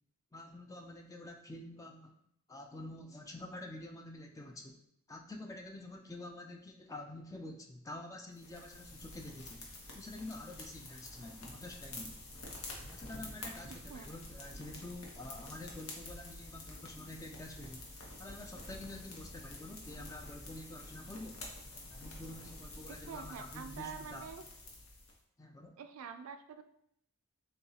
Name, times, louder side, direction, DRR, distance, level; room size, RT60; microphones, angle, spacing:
voice 1, 0.3-2.2 2.5-4.8 5.1-9.6 9.9-12.2 12.9-17.9 18.2-21.5 21.9-24.3 25.4-25.8, left 1 dB, 15° left, 3 dB, 0.3 m, -48 dB
sound 1, 8.3-25.2, left 2 dB, 85° left, 1.0 m, -49 dB
voice 2, 22.9-24.4 25.8-26.6, right 6 dB, 75° right, 9 dB, 0.4 m, -46 dB
6.5 x 2.3 x 2.8 m, 0.72 s
head